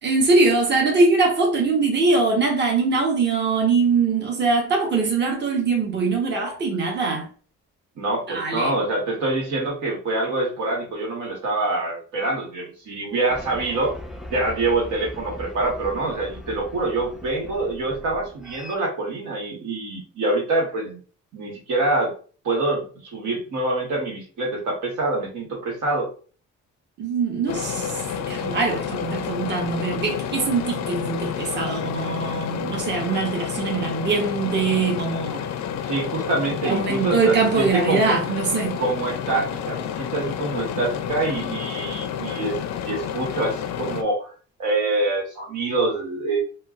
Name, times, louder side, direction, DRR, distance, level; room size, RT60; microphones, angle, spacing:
voice 1, 0.0-7.3 8.3-8.7 27.0-35.5 36.6-38.8, right 4 dB, 35° right, 1.0 m, -22 dB
voice 2, 8.0-13.9 14.3-21.0 21.3-22.1 22.4-26.1 35.8-38.2 38.8-42.6 42.8-44.3 44.6-46.4, right 2 dB, 75° right, 1.2 m, -25 dB
sound 1, 13.3-18.8, equal, ahead, 0.3 m, -39 dB
sound 2, 27.5-44.0, left 8 dB, 60° left, 0.5 m, -30 dB
4.3 x 2.0 x 2.3 m
cardioid pair, 90°, 30 cm